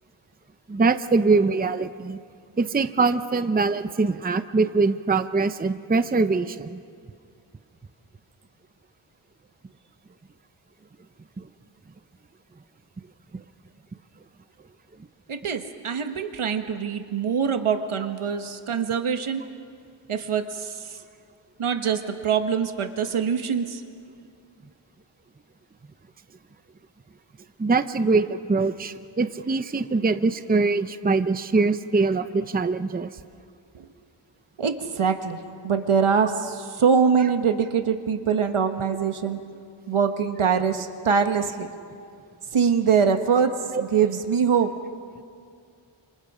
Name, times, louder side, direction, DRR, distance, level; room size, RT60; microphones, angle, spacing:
voice 1, 0.7-2.2 2.6-6.8 11.4-11.5 13.3-13.4 27.6-33.1 43.7-43.8, right 3 dB, 20° right, 11 dB, 0.7 m, -23 dB
voice 2, 15.3-19.4 20.1-21.0 21.6-23.8 33.7-33.9 34.6-35.4 35.6-39.4 39.9-41.7 42.5-44.7, right 6 dB, 80° right, 7 dB, 1.6 m, -23 dB
30.0 x 27.0 x 5.1 m, 2.3 s
wide cardioid pair, 105°, 49 cm